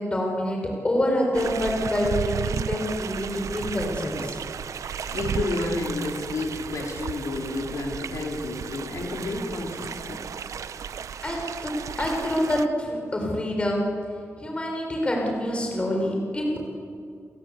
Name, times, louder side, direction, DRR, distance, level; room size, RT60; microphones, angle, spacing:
voice 1, 0.0-4.4 11.2-11.7 12.0-13.9 14.4-16.6, left 1 dB, 20° left, 0 dB, 5.6 m, -26 dB
sound 1, 1.3-12.6, right 7 dB, 75° right, 0.8 m, -34 dB
voice 2, 5.0-10.2, left 2 dB, 70° left, 0 dB, 4.3 m, -30 dB
30.0 x 21.5 x 8.3 m, 2.4 s
wide cardioid pair, 165°, 5 cm